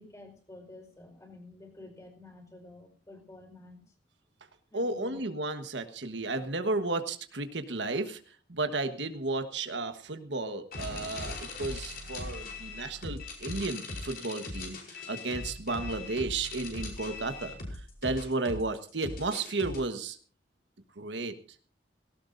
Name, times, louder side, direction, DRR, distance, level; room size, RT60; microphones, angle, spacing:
voice 1, 0.0-3.8 4.7-5.2, left 2 dB, 20° left, 2 dB, 4.9 m, -50 dB
voice 2, 4.7-8.2 8.5-20.2 21.0-21.3, right 3 dB, 80° right, 8 dB, 1.4 m, -33 dB
sound 1, 10.7-19.8, left 2 dB, 55° left, 5.2 m, -40 dB
18.5 x 17.5 x 2.6 m, 0.41 s
head